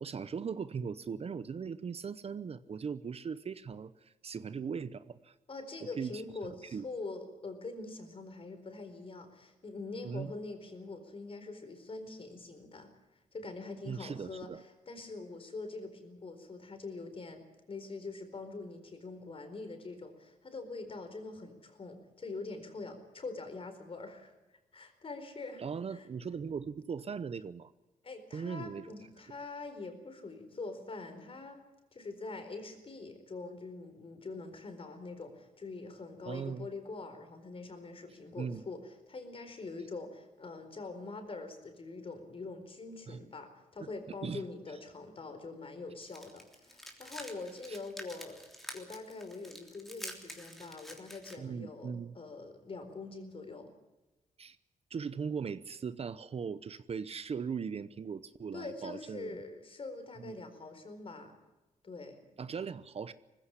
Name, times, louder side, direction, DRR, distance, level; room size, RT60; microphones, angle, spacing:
voice 1, 0.0-5.3 5.8-6.8 10.0-10.3 13.9-14.6 25.6-27.7 28.3-28.9 36.2-36.7 38.4-38.6 43.1-43.2 43.8-43.9 44.2-44.4 47.7-47.8 51.4-52.1 54.4-54.6 54.9-59.3 60.2-60.4 62.4-63.1, right 6 dB, 45° right, 15 dB, 0.8 m, -39 dB
voice 2, 5.5-12.9 13.3-17.4 17.7-24.3 24.7-25.6 25.9-26.1 28.0-31.6 31.9-48.4 48.7-53.7 58.5-61.4 61.8-62.2, left 3 dB, 40° left, 7 dB, 4.5 m, -44 dB
sound 1, 46.0-51.4, equal, ahead, 3.3 m, -48 dB
19.5 x 16.0 x 9.9 m, 1.1 s
cardioid pair, 95°, 14 cm